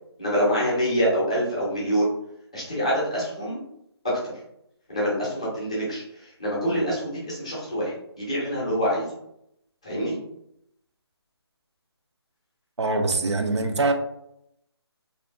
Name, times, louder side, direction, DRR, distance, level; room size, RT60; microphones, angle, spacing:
voice 1, 0.2-2.1 2.5-3.6 4.0-4.3 4.9-9.1 9.8-10.2, equal, 15° left, -7 dB, 0.5 m, -26 dB
voice 2, 12.8-13.9, right 3 dB, 85° right, 5 dB, 0.5 m, -23 dB
2.6 x 2.5 x 2.2 m, 0.76 s
hypercardioid pair, 175°, 14 cm